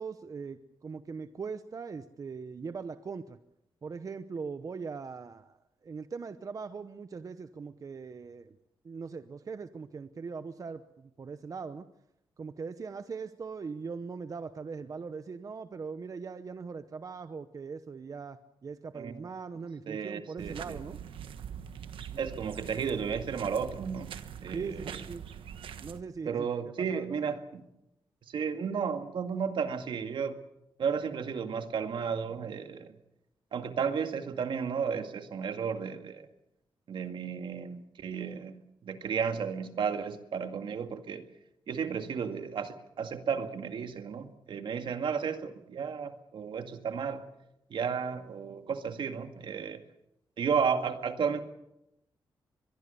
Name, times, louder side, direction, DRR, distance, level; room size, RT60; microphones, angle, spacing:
voice 1, 0.0-3.4 3.8-8.6 8.8-11.9 12.4-21.0 22.1-22.3 24.5-25.2 25.8-26.5 26.9-27.1, right 5 dB, 40° right, 11 dB, 0.9 m, -40 dB
voice 2, 19.9-20.6 22.2-24.2 24.4-24.8 26.3-27.6 28.3-30.4 30.8-32.9 33.5-36.3 36.9-41.2 41.7-47.2 47.7-49.8 50.4-51.4, right 6 dB, 70° right, 7 dB, 2.1 m, -33 dB
sound 1, 20.4-26.0, right 8 dB, 90° right, 1.3 m, -43 dB
23.5 x 22.5 x 6.9 m, 0.84 s
wide cardioid pair, 125°, 9 cm